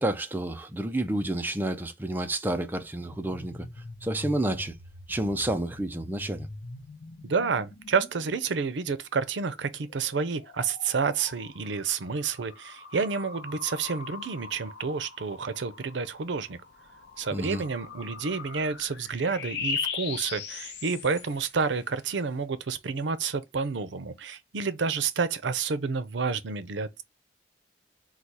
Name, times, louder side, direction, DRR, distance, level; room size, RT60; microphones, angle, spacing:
voice 1, 0.0-3.7 4.0-4.7 5.1-6.5 17.3-17.6, right 1 dB, 10° right, 0.4 m, -30 dB
sound 1, 3.0-9.0 9.6-21.6, left 5 dB, 75° left, 0.7 m, -41 dB
voice 2, 7.2-16.6 17.2-27.0, right 5 dB, 85° right, 0.6 m, -29 dB
4.0 x 2.3 x 4.6 m
head